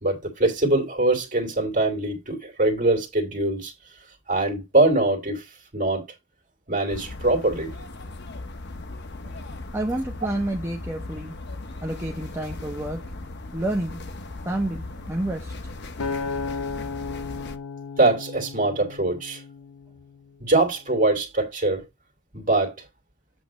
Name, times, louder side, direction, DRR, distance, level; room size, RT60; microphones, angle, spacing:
voice 1, 0.0-3.7 4.3-6.0 6.7-7.7 18.0-19.4 20.4-21.8 22.3-22.7, right 2 dB, 35° right, 2.5 m, -23 dB
sound 1, 6.9-17.6, left 2 dB, 50° left, 0.9 m, -38 dB
voice 2, 9.7-11.4 11.8-13.0 13.5-14.0 14.4-15.5, right 1 dB, 10° right, 0.7 m, -29 dB
Acoustic guitar, 16.0-20.3 20.9-21.2, left 4 dB, 90° left, 0.6 m, -34 dB
8.1 x 3.2 x 6.2 m
head